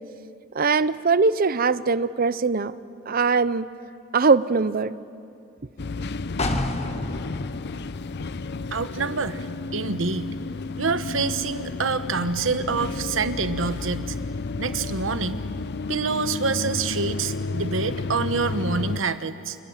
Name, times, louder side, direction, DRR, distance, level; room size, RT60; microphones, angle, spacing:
voice 1, 0.5-2.7 3.1-3.7 4.1-4.9, right 4 dB, 45° right, 16 dB, 0.7 m, -21 dB
sound 1, 5.8-19.0, left 3 dB, 60° left, 0.6 m, -31 dB
sound 2, 6.4-10.1 10.5-10.6, left 1 dB, 35° left, 1.6 m, -32 dB
voice 2, 8.7-9.4 9.7-10.3 10.8-14.2 14.5-15.4 15.9-19.6, right 4 dB, 75° right, 11 dB, 1.1 m, -26 dB
29.5 x 25.5 x 7.4 m, 2.6 s
head